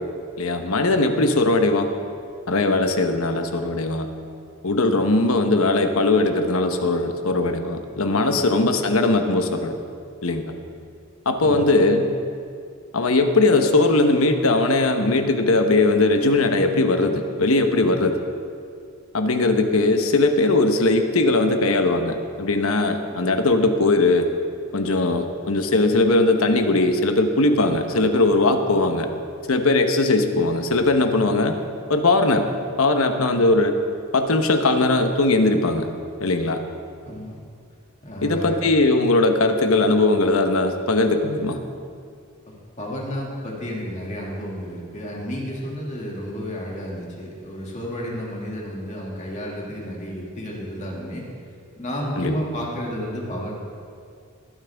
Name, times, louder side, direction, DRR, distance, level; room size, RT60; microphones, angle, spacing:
voice 1, 0.4-1.9 2.5-4.1 4.6-9.8 10.2-10.5 11.3-12.0 12.9-18.2 19.1-24.3 24.7-29.1 29.5-31.5 31.9-32.4 32.8-33.7 34.1-35.9 36.2-36.6 38.2-41.6 52.2-52.4, left 2 dB, 85° left, 6 dB, 1.0 m, -19 dB
voice 2, 37.1-37.4 38.0-38.6 42.8-51.2 51.8-53.5, equal, 35° left, -3 dB, 2.2 m, -31 dB
20.5 x 9.1 x 3.5 m, 2.3 s
head